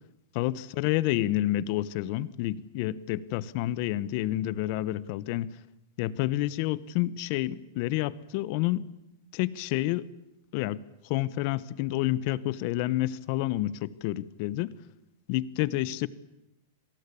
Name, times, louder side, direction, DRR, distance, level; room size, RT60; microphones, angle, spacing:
voice 1, 0.3-5.5 6.0-8.8 9.3-10.1 10.5-14.7 15.3-16.1, left 15 dB, 50° left, 19 dB, 1.1 m, -29 dB
27.0 x 18.5 x 8.6 m, 0.89 s
supercardioid pair, 145°, 0 cm